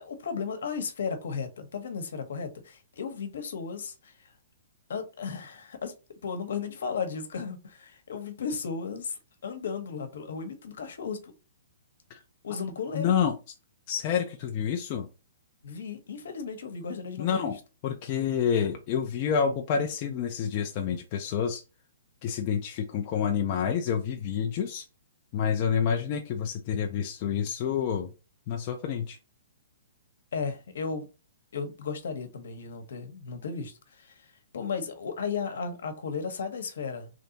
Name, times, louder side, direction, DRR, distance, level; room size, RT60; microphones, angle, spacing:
voice 1, 0.0-4.3 4.9-5.9 6.2-11.3 12.4-13.1 15.6-17.5 30.3-31.1 31.5-34.3 34.5-37.1, left 5 dB, 60° left, 1.1 m, -35 dB
voice 2, 12.9-13.4 13.9-15.1 17.2-17.6 17.8-21.6 22.2-24.9 25.3-28.1 28.5-29.2, left 7 dB, 25° left, 0.4 m, -28 dB
3.3 x 2.7 x 3.9 m
hypercardioid pair, 180°, 0 cm